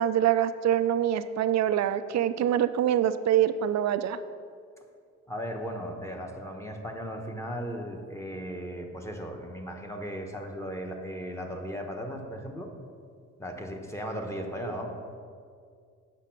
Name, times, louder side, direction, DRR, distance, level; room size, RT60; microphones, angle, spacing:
voice 1, 0.0-4.2, right 10 dB, 60° right, 11 dB, 0.5 m, -25 dB
voice 2, 5.3-12.7 13.4-15.0, equal, 10° left, 2 dB, 1.2 m, -36 dB
8.3 x 6.0 x 5.9 m, 2.2 s
cardioid pair, 90°, 30 cm